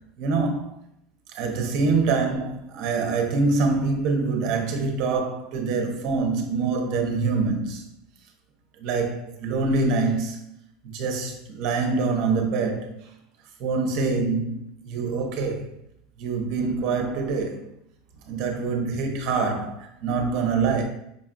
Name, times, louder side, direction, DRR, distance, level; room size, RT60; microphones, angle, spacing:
voice 1, 0.2-0.7 1.3-7.8 8.8-10.4 10.8-12.9 13.6-15.7 16.2-17.6 18.3-20.8, right 4 dB, 45° right, 0.6 m, -25 dB
5.1 x 2.3 x 2.5 m
supercardioid pair, 170°, 0 cm